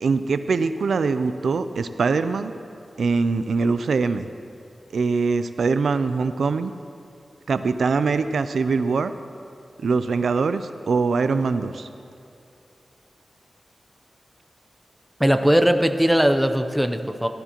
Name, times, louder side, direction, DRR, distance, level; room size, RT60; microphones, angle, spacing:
voice 1, 0.0-2.5 3.0-4.3 4.9-6.7 7.5-9.1 9.8-11.9, right 4 dB, 90° right, 11 dB, 0.4 m, -23 dB
voice 2, 15.2-17.3, equal, 5° right, 7 dB, 0.6 m, -19 dB
16.0 x 12.5 x 3.0 m, 2.6 s
wide cardioid pair, 100°, 0 cm